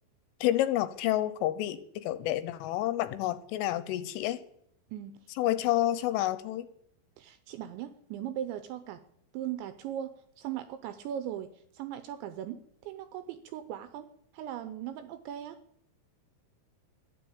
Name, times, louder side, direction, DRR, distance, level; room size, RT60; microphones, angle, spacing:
voice 1, 0.4-4.4 5.4-6.7, left 13 dB, 80° left, 14 dB, 3.2 m, -29 dB
voice 2, 7.2-9.0 9.3-14.1 14.3-15.6, right 11 dB, 80° right, 11 dB, 2.7 m, -39 dB
13.0 x 10.5 x 8.7 m, 0.71 s
omnidirectional pair, 5.9 m